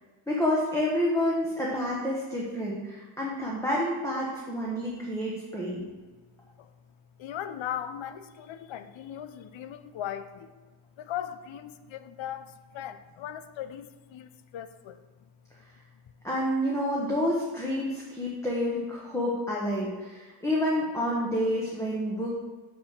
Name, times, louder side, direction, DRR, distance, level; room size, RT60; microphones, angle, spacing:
voice 1, 0.3-5.8 16.2-22.4, left 1 dB, 5° left, -4 dB, 1.1 m, -29 dB
voice 2, 5.8-6.2 6.6-6.7 7.2-10.5 11.0-15.3 15.6-15.7 15.9-16.0, left 10 dB, 65° left, 11 dB, 0.6 m, -39 dB
6.4 x 6.0 x 6.7 m, 1.3 s
wide cardioid pair, 165°, 49 cm